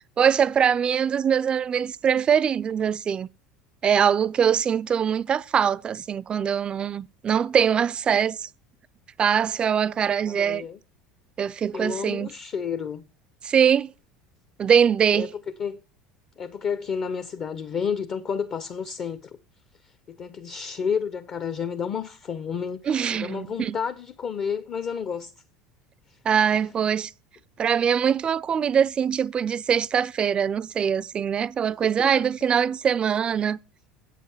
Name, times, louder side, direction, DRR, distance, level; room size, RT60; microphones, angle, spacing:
voice 1, 0.2-3.3 3.8-8.5 9.2-10.6 11.4-12.3 13.4-13.9 14.6-15.3 22.9-23.8 26.3-27.1 27.6-33.6, right 8 dB, 30° right, 0.4 m, -22 dB
voice 2, 10.3-10.8 11.7-13.1 15.1-15.8 16.4-19.3 20.1-25.3 26.4-26.6 32.0-32.3, left 6 dB, 40° left, 0.7 m, -31 dB
8.2 x 7.5 x 5.4 m
hypercardioid pair, 70°, 3 cm